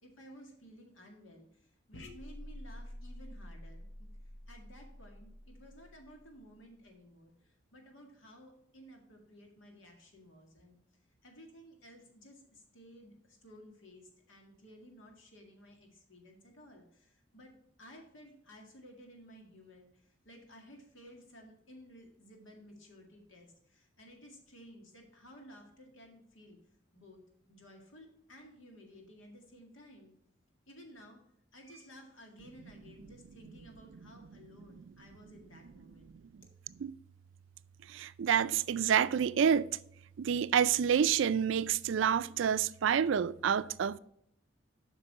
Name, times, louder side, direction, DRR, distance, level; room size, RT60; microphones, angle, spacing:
voice 1, 0.0-4.1 4.5-10.8 11.2-17.5 17.8-26.6 26.9-30.1 30.7-31.2 31.5-36.1, equal, 80° left, 2.0 m, -55 dB
sound 1, 1.9-6.6, left 1 dB, 60° left, 0.9 m, -49 dB
voice 2, 37.9-39.8 40.2-44.0, right 8 dB, 70° right, 0.4 m, -28 dB
8.1 x 5.9 x 4.2 m
head